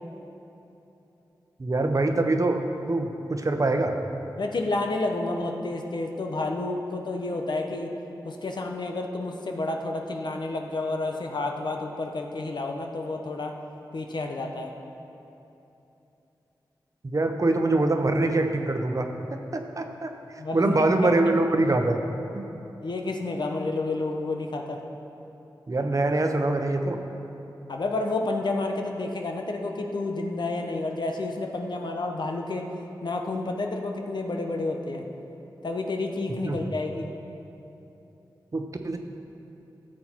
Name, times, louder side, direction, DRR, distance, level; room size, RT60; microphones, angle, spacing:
voice 1, 1.6-2.6 2.9-4.0 17.1-20.1 20.5-22.0 22.3-22.4 25.7-27.0 36.4-36.6 38.5-39.0, right 2 dB, 45° right, 5 dB, 0.9 m, -24 dB
voice 2, 4.4-7.9 8.2-13.5 13.9-14.7 20.4-20.8 22.8-24.8 27.7-32.7 33.0-35.0 35.6-37.1, left 2 dB, 65° left, 3 dB, 1.0 m, -30 dB
13.5 x 7.7 x 4.5 m, 3.0 s
cardioid pair, 45°, 8 cm